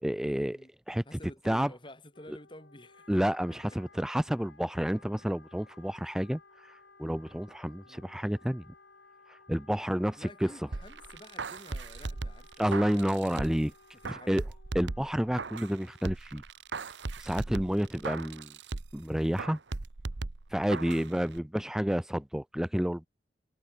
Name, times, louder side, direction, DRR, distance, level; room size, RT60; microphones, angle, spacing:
voice 1, 0.0-0.6 0.9-1.0 1.5-1.7 3.1-8.7 9.3-10.5 12.6-13.7 14.1-14.4 14.7-16.4 17.2-18.5 18.9-19.6 20.5-23.1, equal, 5° right, 0.3 m, -30 dB
voice 2, 1.0-3.4 7.8-8.1 10.2-13.6 14.0-14.5 17.5-17.8 20.7-21.4, left 1 dB, 25° left, 6.4 m, -51 dB
Wind instrument woodwind instrument, 2.1-16.2, left 3 dB, 85° left, 7.1 m, -58 dB
sound 1, 10.7-13.7 14.0-15.8 16.1-19.0 19.4-21.1 21.4-21.5, right 3 dB, 90° right, 1.0 m, -38 dB
head